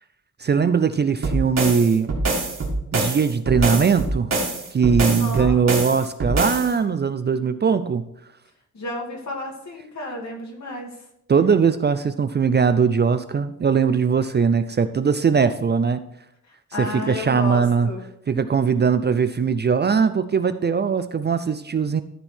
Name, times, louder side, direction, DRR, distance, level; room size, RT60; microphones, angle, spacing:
voice 1, 0.4-2.1 2.9-4.3 4.7-8.1 11.3-16.0 16.8-17.9 18.3-22.0, right 6 dB, 35° right, 11 dB, 0.4 m, -20 dB
sound 1, 1.2-6.7, right 2 dB, 55° right, 2.0 m, -24 dB
voice 2, 5.1-5.6 8.7-11.0 16.4-18.0, left 1 dB, 60° left, 0 dB, 2.2 m, -32 dB
13.0 x 4.6 x 4.4 m, 0.81 s
wide cardioid pair, 130°, 31 cm